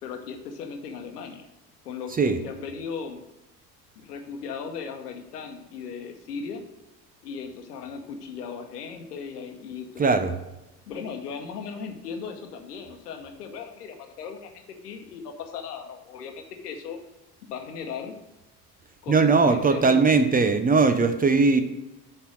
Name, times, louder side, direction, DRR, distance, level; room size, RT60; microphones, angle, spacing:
voice 1, 0.0-1.5 1.8-3.2 4.0-6.6 7.2-10.2 10.9-17.0 17.5-18.1 19.0-19.2 19.4-20.4, left 6 dB, 75° left, 5 dB, 1.1 m, -37 dB
voice 2, 10.0-10.4 19.1-21.6, right 4 dB, 20° right, 9 dB, 0.6 m, -20 dB
6.5 x 4.7 x 6.3 m, 1.0 s
figure-of-eight pair, 60°, 47 cm